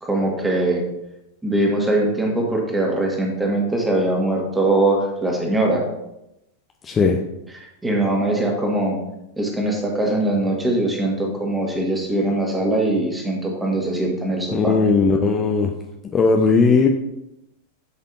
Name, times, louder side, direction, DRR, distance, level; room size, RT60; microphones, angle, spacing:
voice 1, 0.0-0.8 1.4-5.8 7.8-9.0 9.4-14.8, right 1 dB, 10° right, 0 dB, 1.8 m, -21 dB
voice 2, 6.8-7.2 14.5-15.7 16.1-16.9, left 4 dB, 20° left, 2 dB, 0.7 m, -17 dB
10.5 x 5.4 x 2.7 m, 0.87 s
figure-of-eight pair, 90°, 0 cm